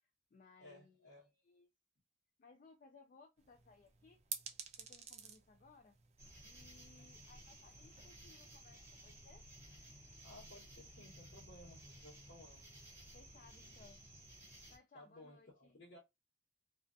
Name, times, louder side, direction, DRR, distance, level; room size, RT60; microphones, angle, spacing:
voice 1, 0.0-1.7 2.4-4.2 4.8-6.0 6.4-9.4 13.1-14.0 14.7-15.8, left 4 dB, 45° left, 0.3 m, -64 dB
voice 2, 0.6-1.3 10.2-12.7 14.9-16.0, left 1 dB, 60° left, 1.1 m, -58 dB
sound 1, 3.4-8.6, right 7 dB, 35° right, 0.4 m, -52 dB
sound 2, 6.2-14.8, right 1 dB, 15° right, 0.9 m, -57 dB
2.4 x 2.3 x 2.4 m
head